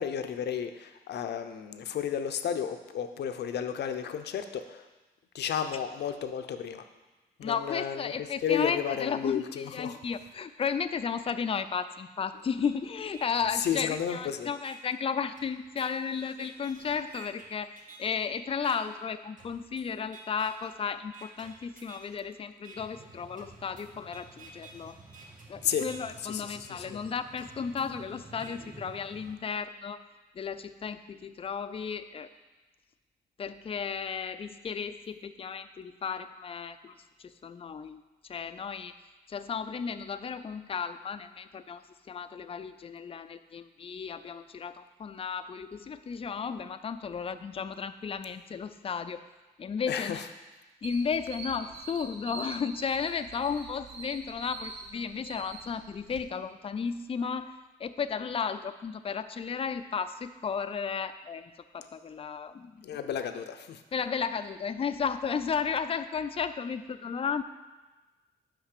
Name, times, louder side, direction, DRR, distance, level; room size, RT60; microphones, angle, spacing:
voice 1, 0.0-4.8 5.3-6.8 7.4-8.1 8.4-10.0 13.6-14.5 25.6-25.9 26.3-27.0 49.9-50.2 62.8-63.8, left 8 dB, 75° left, 8 dB, 0.6 m, -32 dB
voice 2, 7.4-17.7 18.0-25.0 25.5-30.0 30.3-32.3 33.4-36.9 37.2-38.0 38.3-38.9 39.3-41.8 42.1-49.2 49.6-50.2 50.8-57.5 57.8-63.0 63.9-67.4, left 6 dB, 35° left, 11 dB, 0.4 m, -34 dB
sound 1, 12.6-12.7 13.1-14.2 14.6-14.8 15.4-18.2 18.6-18.8 19.4-19.8 20.1-20.7 21.1-22.1 22.6-22.8 23.4-26.2 26.6-26.7 27.4-28.5, right 3 dB, 50° right, 1.6 m, -52 dB
sound 2, 22.7-29.3, right 3 dB, 25° right, 2.0 m, -52 dB
sound 3, 50.8-56.2, right 4 dB, 90° right, 0.8 m, -44 dB
5.8 x 5.3 x 6.6 m, 1.2 s
cardioid pair, 80°, 18 cm